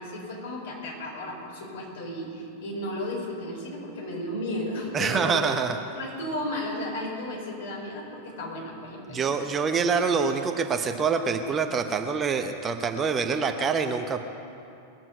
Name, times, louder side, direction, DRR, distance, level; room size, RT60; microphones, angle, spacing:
voice 1, 0.0-5.5 5.9-9.3, left 1 dB, 60° left, -2 dB, 4.9 m, -34 dB
voice 2, 4.9-5.8 9.1-14.3, right 5 dB, 20° right, 6 dB, 0.9 m, -26 dB
21.5 x 7.5 x 8.0 m, 2.7 s
figure-of-eight pair, 90°, 0 cm